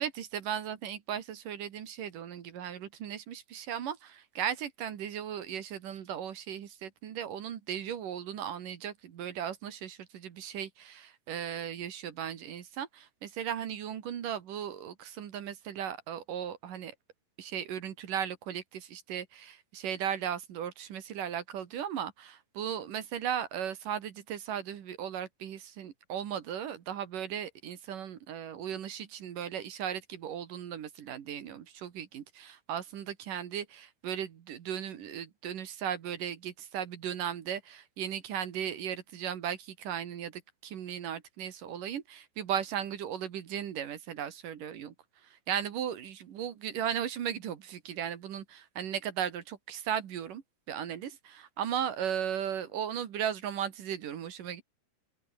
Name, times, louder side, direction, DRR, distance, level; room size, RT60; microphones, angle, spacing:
voice 1, 0.0-16.9 17.4-44.9 45.2-50.4 50.7-54.6, right 9 dB, 55° right, 2.8 m, -36 dB
open air
omnidirectional pair, 5.6 m